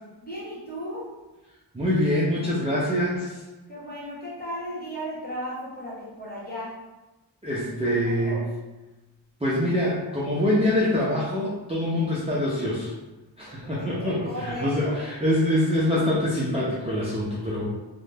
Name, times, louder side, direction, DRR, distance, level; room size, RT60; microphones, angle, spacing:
voice 1, 0.2-1.1 3.7-6.7 7.8-8.4 13.7-15.0, equal, 20° left, -7 dB, 1.1 m, -35 dB
voice 2, 1.7-3.4 7.4-8.4 9.4-12.9 13.4-17.7, left 1 dB, 15° right, -8 dB, 0.5 m, -25 dB
2.4 x 2.1 x 3.3 m, 1.1 s
wide cardioid pair, 70°, 46 cm